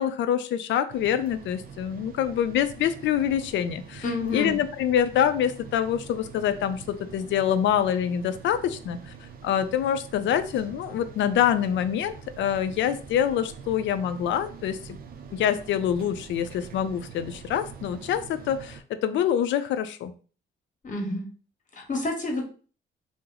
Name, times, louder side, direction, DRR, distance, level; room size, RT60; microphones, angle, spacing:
voice 1, 0.0-4.0 4.3-9.1 9.4-15.0 15.3-20.1, left 9 dB, 70° left, 11 dB, 0.4 m, -26 dB
sound 1, 0.9-18.8, right 6 dB, 50° right, 0.5 m, -44 dB
voice 2, 4.0-4.6 20.8-21.3 21.7-22.5, left 2 dB, 40° left, 1 dB, 1.0 m, -29 dB
2.9 x 2.0 x 3.7 m, 0.39 s
cardioid pair, 90°, 20 cm